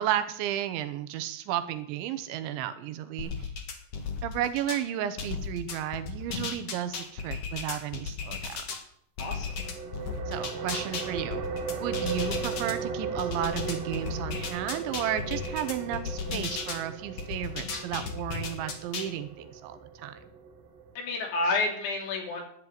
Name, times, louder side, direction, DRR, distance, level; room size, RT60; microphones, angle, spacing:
voice 1, 0.0-3.5 4.2-8.6 10.3-11.4 11.8-20.2, right 11 dB, 75° right, 11 dB, 3.2 m, -33 dB
sound 1, 3.2-4.8 5.2-8.8 9.2-12.7 13.2-16.8 17.2-19.1, left 5 dB, 55° left, 1.7 m, -35 dB
voice 2, 9.2-9.6 21.0-22.4, left 3 dB, 75° left, 0 dB, 5.4 m, -29 dB
sound 2, 9.6-20.9, right 5 dB, 55° right, 2.9 m, -37 dB
12.5 x 7.5 x 9.5 m, 0.68 s
omnidirectional pair, 5.5 m